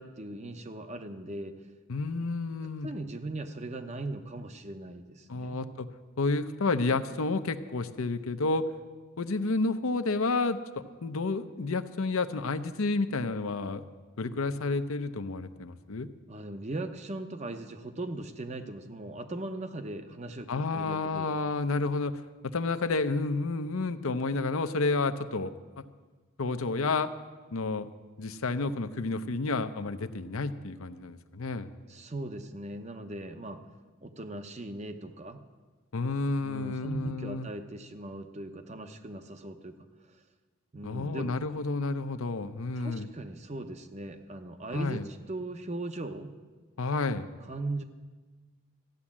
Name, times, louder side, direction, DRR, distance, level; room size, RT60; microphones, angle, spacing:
voice 1, 0.0-1.6 2.8-5.6 16.3-21.3 31.9-33.7 34.0-35.4 36.4-39.7 40.1-40.2 40.7-41.3 42.8-46.3 47.5-47.8, right 2 dB, 30° right, 8 dB, 0.8 m, -39 dB
voice 2, 1.9-2.9 5.3-5.9 6.2-8.7 9.2-10.6 11.0-13.8 14.2-16.1 20.5-25.5 25.8-25.9 26.4-27.1 27.5-27.9 28.2-31.7 35.9-37.5 40.8-43.1 44.7-45.1 46.8-47.3, left 3 dB, 75° left, 10 dB, 0.7 m, -30 dB
14.5 x 9.8 x 7.3 m, 1.4 s
head